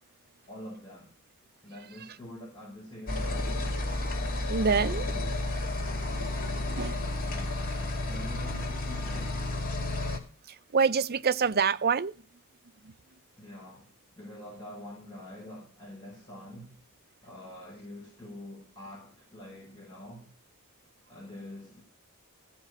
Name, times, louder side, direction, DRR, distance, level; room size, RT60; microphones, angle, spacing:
voice 1, 0.5-1.1 1.6-3.7 4.7-5.3 7.2-9.4 13.4-16.8 17.2-20.3 21.1-21.8, equal, 20° left, 5.6 m, -45 dB
sound 1, 3.1-10.2, left 2 dB, 40° left, 2.5 m, -31 dB
voice 2, 4.5-5.1 6.2-6.3 6.8-7.0 10.5-12.1 12.8-12.9, right 5 dB, 45° right, 0.6 m, -26 dB
15.5 x 5.4 x 7.9 m
head